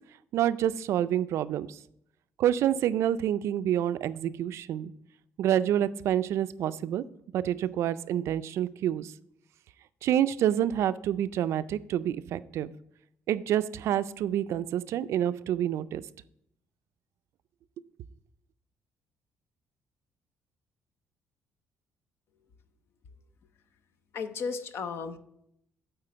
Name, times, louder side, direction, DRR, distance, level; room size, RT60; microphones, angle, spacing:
voice 1, 0.3-1.8 2.4-4.9 5.4-7.0 7.3-9.1 10.0-12.7 13.3-16.0, right 11 dB, 65° right, 15 dB, 0.3 m, -28 dB
voice 2, 24.1-25.2, left 5 dB, 55° left, 11 dB, 0.6 m, -34 dB
8.9 x 4.2 x 6.6 m, 0.76 s
cardioid pair, 145°, 5 cm